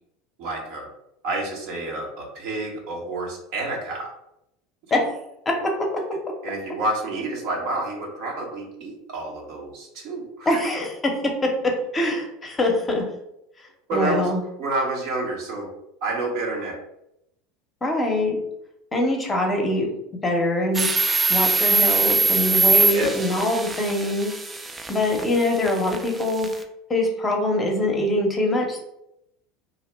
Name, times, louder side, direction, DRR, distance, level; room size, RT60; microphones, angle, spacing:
voice 1, 0.4-0.9 1.2-4.1 6.4-10.6 13.9-14.3 14.6-15.7 16.0-16.8 22.8-23.2, right 2 dB, 60° right, 0 dB, 0.7 m, -29 dB
voice 2, 10.5-10.9 11.9-13.0 13.9-14.4 17.8-18.4 18.9-19.9 20.2-20.9 21.3-24.3 24.9-26.5 26.9-28.8, left 1 dB, 20° left, 1 dB, 0.7 m, -23 dB
sound 1, 20.7-26.6, right 3 dB, 15° right, 0.3 m, -22 dB
2.4 x 2.0 x 3.2 m, 0.82 s
hypercardioid pair, 80°, 0 cm